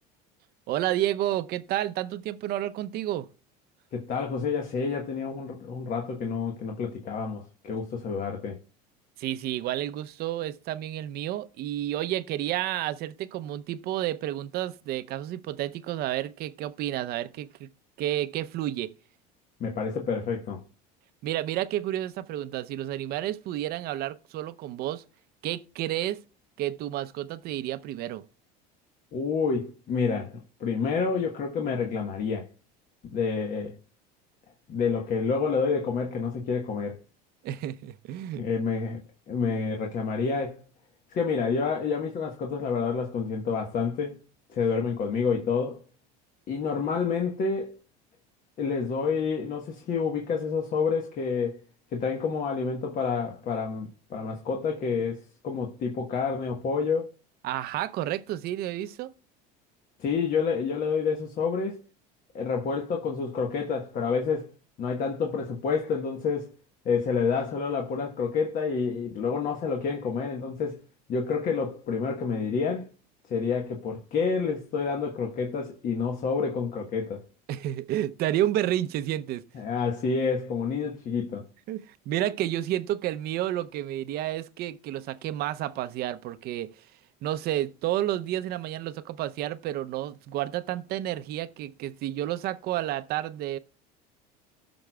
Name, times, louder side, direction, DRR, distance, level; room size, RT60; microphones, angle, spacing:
voice 1, 0.7-3.3 9.2-17.7 18.0-18.9 21.2-25.0 25.4-26.2 26.6-28.2 37.4-38.4 57.4-59.1 77.5-79.4 81.7-86.7 87.2-93.6, right 13 dB, 55° right, 0.7 m, -30 dB
voice 2, 3.9-8.6 19.6-20.6 29.1-32.5 33.0-33.8 34.7-37.0 38.4-39.0 39.3-40.6 41.1-44.2 44.5-45.8 46.5-47.8 48.6-51.6 51.9-57.1 60.0-61.8 62.3-64.5 64.8-66.5 66.8-70.8 71.1-72.9 73.3-77.2 79.5-81.4, left 5 dB, 45° left, 1.3 m, -28 dB
18.0 x 6.2 x 2.3 m
supercardioid pair, 115°, 20 cm